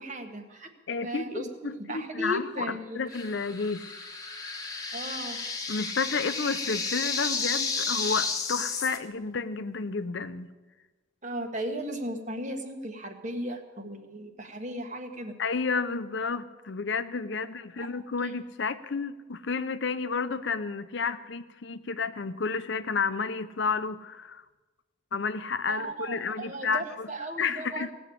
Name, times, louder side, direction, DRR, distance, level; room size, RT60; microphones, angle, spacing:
voice 1, 0.0-0.7 1.0-3.0 4.9-5.4 11.2-15.3 17.8-17.9 25.7-27.9, right 1 dB, 35° right, 5 dB, 1.3 m, -36 dB
voice 2, 0.9-3.9 5.7-10.5 15.4-24.4 25.1-27.1 27.4-27.9, left 4 dB, 60° left, 12 dB, 0.6 m, -31 dB
sound 1, 3.1-9.0, left 4 dB, 20° left, 1.2 m, -32 dB
17.5 x 7.1 x 8.4 m, 1.2 s
head